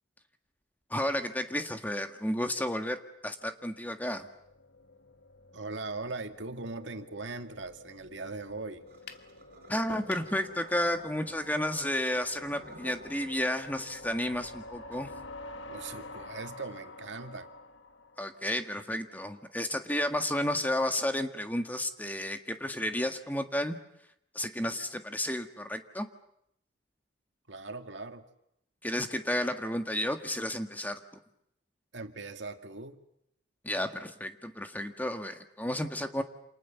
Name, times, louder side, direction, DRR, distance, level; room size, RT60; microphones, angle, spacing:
voice 1, 0.9-4.3 9.7-15.1 18.2-23.8 24.3-26.1 28.8-31.0 33.6-36.2, left 1 dB, 10° left, 7 dB, 1.7 m, -32 dB
sound 1, 3.5-18.7, left 2 dB, 85° left, 1.7 m, -49 dB
voice 2, 5.5-8.8 15.6-17.5 27.5-28.3 31.9-33.0, right 3 dB, 80° right, 7 dB, 2.1 m, -40 dB
sound 2, 8.9-11.7 12.2-13.5, right 1 dB, 55° right, 5.0 m, -53 dB
sound 3, 9.1-9.3 9.9-10.3, left 4 dB, 65° left, 2.3 m, -45 dB
29.0 x 28.0 x 7.1 m, 0.76 s
head